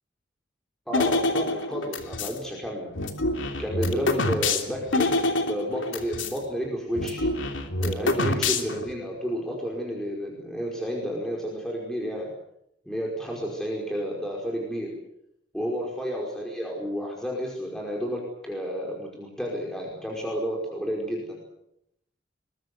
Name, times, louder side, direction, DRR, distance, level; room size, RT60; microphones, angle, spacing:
sound 1, 0.9-2.4 2.9-6.4 6.6-6.7 6.9-8.9, left 2 dB, 85° left, 3.1 m, -26 dB
voice 1, 0.9-2.9 3.6-5.1 5.4-7.3 7.8-12.3 12.9-14.9 15.5-21.4, equal, 5° left, -1 dB, 5.1 m, -31 dB
22.5 x 22.5 x 8.1 m, 0.77 s
head